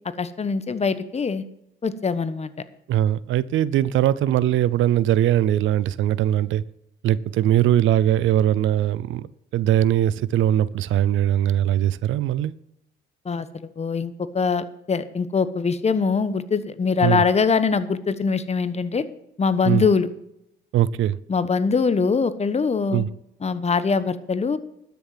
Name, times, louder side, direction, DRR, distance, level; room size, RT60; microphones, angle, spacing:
voice 1, 0.2-1.4 1.8-2.5 13.2-19.0 19.4-20.1 21.3-23.0 23.4-24.6, left 5 dB, 35° left, 1.2 m, -23 dB
voice 2, 2.9-6.6 7.0-9.3 9.5-12.5 17.0-17.2 19.6-19.8 20.7-21.2 22.9-23.1, right 11 dB, 80° right, 0.6 m, -20 dB
12.5 x 7.0 x 7.6 m
cardioid pair, 90°, 20 cm